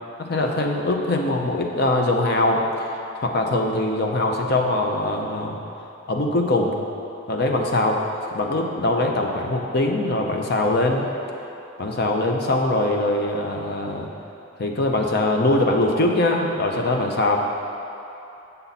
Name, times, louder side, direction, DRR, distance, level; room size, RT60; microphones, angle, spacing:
voice 1, 0.2-2.6 3.1-5.6 6.1-6.8 7.3-8.0 8.3-11.1 11.8-14.1 14.6-17.4, left 2 dB, 55° left, 1 dB, 0.7 m, -22 dB
7.1 x 6.8 x 4.1 m, 2.9 s
head